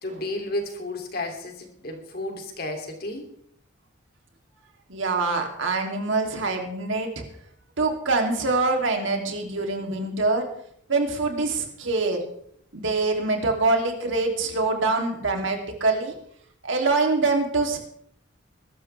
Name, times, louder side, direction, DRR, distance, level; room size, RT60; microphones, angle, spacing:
voice 1, 0.0-3.2, left 1 dB, 50° left, 3 dB, 2.9 m, -32 dB
voice 2, 4.9-7.2 7.8-10.5 10.9-12.2 12.7-16.1 16.6-17.8, right 3 dB, 75° right, 3 dB, 2.9 m, -24 dB
22.0 x 12.5 x 3.4 m, 0.65 s
head